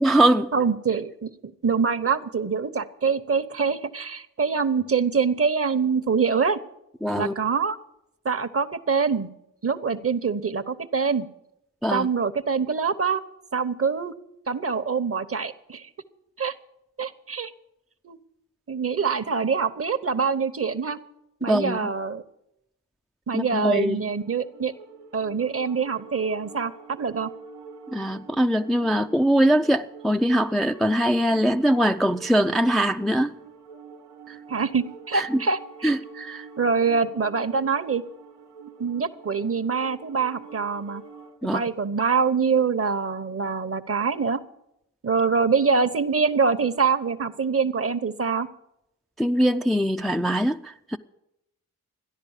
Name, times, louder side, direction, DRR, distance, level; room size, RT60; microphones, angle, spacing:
voice 1, 0.0-0.5 7.0-7.3 11.8-12.1 21.5-21.8 23.3-24.0 27.9-33.3 34.3-34.4 35.1-35.4 35.8-36.5 41.4-41.6 49.2-51.0, right 1 dB, ahead, 0.4 m, -22 dB
voice 2, 0.5-6.6 7.2-7.8 8.2-9.3 9.6-11.3 11.9-13.2 13.5-14.1 14.5-15.9 16.4-16.5 17.0-17.5 18.0-18.2 18.7-21.0 21.4-22.2 23.3-24.7 25.1-27.3 34.5-35.9 36.6-38.0 38.8-41.0 41.4-44.4 45.0-48.5, right 5 dB, 35° right, 1.0 m, -25 dB
sound 1, 23.8-41.4, right 4 dB, 80° right, 1.0 m, -46 dB
13.5 x 10.5 x 7.2 m
supercardioid pair, 45°, 38 cm